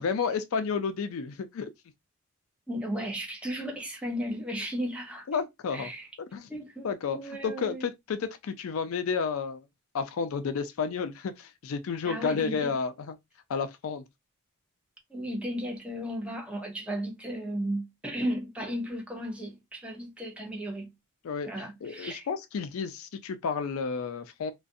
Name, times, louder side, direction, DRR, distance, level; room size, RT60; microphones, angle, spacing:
voice 1, 0.0-1.7 5.3-5.9 6.3-6.5 6.8-9.6 9.9-13.2 13.5-14.0 21.2-21.5 21.8-24.5, left 5 dB, 75° left, 0.4 m, -31 dB
voice 2, 2.7-5.3 5.7-6.1 6.5-7.8 12.0-12.7 15.1-20.9 21.5-22.3, equal, 5° right, 0.6 m, -35 dB
2.4 x 2.1 x 2.6 m
head